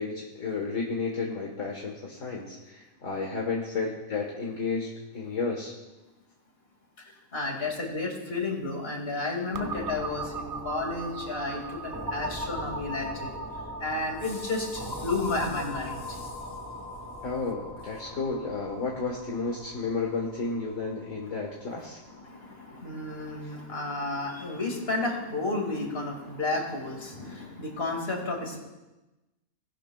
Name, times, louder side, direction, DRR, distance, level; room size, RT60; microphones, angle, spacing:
voice 1, 0.0-5.7 17.2-22.0, left 4 dB, 60° left, -1 dB, 1.7 m, -32 dB
voice 2, 7.3-13.3 13.8-16.0 22.3-28.6, left 2 dB, 40° left, 1 dB, 2.3 m, -32 dB
sound 1, 9.5-23.1, right 1 dB, 20° right, 0.6 m, -39 dB
19.0 x 11.5 x 2.3 m, 1.1 s
omnidirectional pair, 1.6 m